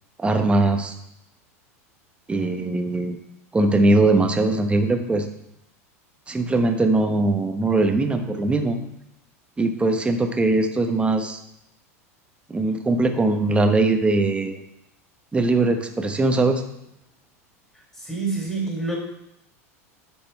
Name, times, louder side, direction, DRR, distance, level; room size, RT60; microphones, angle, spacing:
voice 1, 0.2-0.9 2.3-3.2 3.5-5.3 6.3-8.8 9.6-11.4 12.5-14.6 15.3-16.6, right 2 dB, 15° right, 5 dB, 1.0 m, -21 dB
voice 2, 18.0-19.0, right 3 dB, 10° left, -3 dB, 3.2 m, -26 dB
10.5 x 4.3 x 4.5 m, 0.81 s
hypercardioid pair, 90°, 8 cm